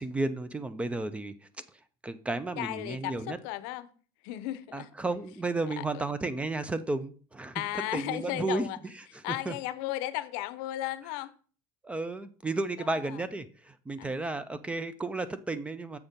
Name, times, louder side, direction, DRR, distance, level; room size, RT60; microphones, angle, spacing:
voice 1, 0.0-1.3 2.0-3.4 4.7-7.6 7.9-8.7 9.1-9.6 11.8-16.0, right 2 dB, 10° right, 0.4 m, -33 dB
voice 2, 2.6-3.9 4.2-4.9 5.8-5.9 7.5-8.8 9.2-11.3 12.8-13.2 14.0-14.1, left 15 dB, 70° left, 0.6 m, -35 dB
7.0 x 4.1 x 5.1 m
cardioid pair, 140°, 11 cm